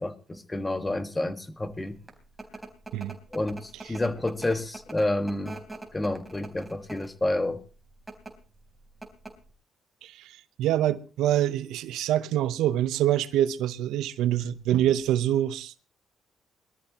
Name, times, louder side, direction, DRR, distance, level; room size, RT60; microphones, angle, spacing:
voice 1, 0.0-2.0 3.3-5.6 5.9-7.6, left 1 dB, 15° left, 1.5 m, -29 dB
sound 1, 1.8-7.2 7.9-8.3 8.7-8.8 9.0-9.5, right 2 dB, 15° right, 3.6 m, -42 dB
voice 2, 10.0-15.8, right 12 dB, 90° right, 0.7 m, -26 dB
22.5 x 13.5 x 2.9 m
cardioid pair, 90°, 0 cm